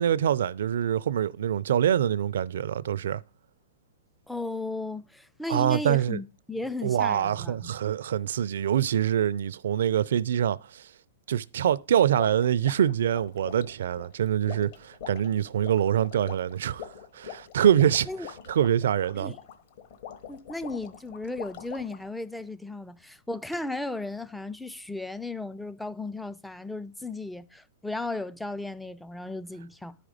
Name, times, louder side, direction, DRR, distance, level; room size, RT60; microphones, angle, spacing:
voice 1, 0.0-3.2 5.5-6.2 6.8-10.9 11.3-16.9 17.1-19.3, right 9 dB, 75° right, 0.4 m, -25 dB
voice 2, 4.3-7.7 18.1-18.3 19.1-19.4 20.3-30.0, left 2 dB, 5° left, 0.4 m, -35 dB
sound 1, 12.2-22.1, left 9 dB, 55° left, 1.2 m, -44 dB
10.5 x 5.0 x 5.0 m
hypercardioid pair, 150°, 0 cm